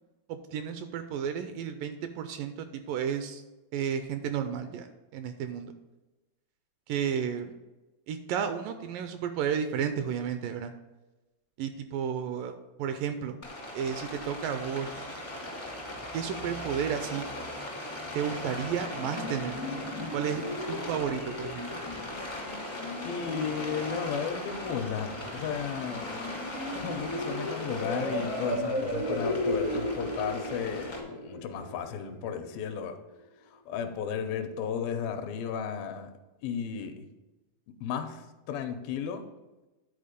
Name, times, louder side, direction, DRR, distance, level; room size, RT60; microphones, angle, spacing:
voice 1, 0.3-3.4 3.7-5.7 6.9-7.6 8.1-10.7 11.6-13.4 13.7-15.2 16.1-17.3 18.2-19.6 20.1-21.7, right 8 dB, 80° right, 8 dB, 2.0 m, -32 dB
Rain, 13.4-31.0, left 1 dB, 35° left, 0.4 m, -39 dB
sound 1, 18.7-32.6, equal, 60° left, 0.8 m, -36 dB
voice 2, 23.0-26.3 26.7-33.0 33.7-36.1 36.4-37.1 37.8-38.2 38.5-39.2, left 7 dB, 80° left, 7 dB, 2.5 m, -34 dB
10.5 x 4.3 x 5.1 m, 1.1 s
omnidirectional pair, 4.2 m